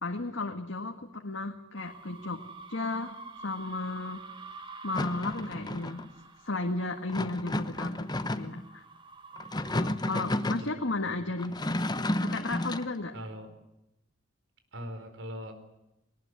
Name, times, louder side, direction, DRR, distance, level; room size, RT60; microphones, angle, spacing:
voice 1, 0.0-2.4 2.7-3.2 3.4-4.2 4.8-6.0 6.4-8.0 8.4-8.8 9.7-11.6 12.2-13.1, left 2 dB, 85° left, 4 dB, 1.8 m, -34 dB
sound 1, 1.8-10.6, right 4 dB, 25° right, 2.3 m, -48 dB
sound 2, 4.9-6.1 7.1-8.6 9.4-10.7 11.4-12.9, left 1 dB, 20° left, 1.0 m, -32 dB
voice 2, 9.8-11.0 13.1-13.5 14.7-15.5, equal, 75° right, 8 dB, 4.6 m, -42 dB
21.5 x 19.5 x 9.6 m, 0.88 s
head